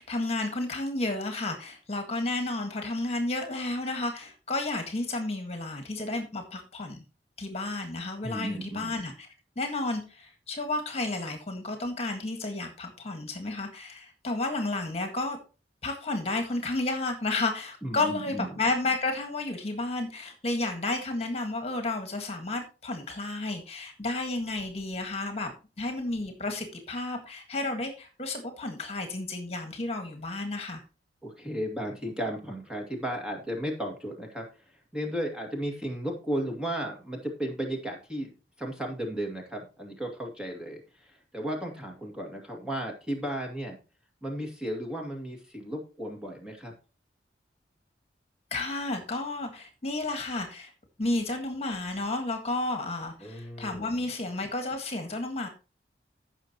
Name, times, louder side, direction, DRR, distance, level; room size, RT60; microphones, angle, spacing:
voice 1, 0.0-7.0 7.4-9.1 9.6-15.4 15.8-25.5 25.8-30.8 48.5-50.7 51.0-55.5, left 2 dB, 35° left, 5 dB, 1.8 m, -32 dB
voice 2, 8.2-9.0 17.8-18.5 31.2-34.6 34.9-43.8 44.2-46.7 53.2-54.1, equal, 5° right, 1 dB, 2.3 m, -35 dB
15.5 x 6.3 x 3.0 m, 0.32 s
head